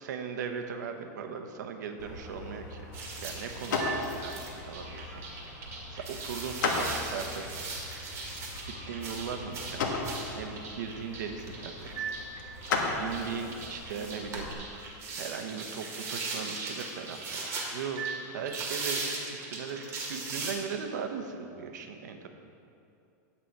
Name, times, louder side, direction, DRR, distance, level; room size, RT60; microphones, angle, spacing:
voice 1, 0.0-5.2 5.6-7.7 8.6-10.1 10.3-12.1 13.0-14.9 15.2-22.3, right 6 dB, 80° right, 6 dB, 1.0 m, -38 dB
sound 1, 2.0-14.5, left 3 dB, 90° left, 1.4 m, -37 dB
sound 2, 2.9-20.5, right 3 dB, 25° right, 1.6 m, -39 dB
9.0 x 8.3 x 4.7 m, 2.6 s
supercardioid pair, 155°, 10 cm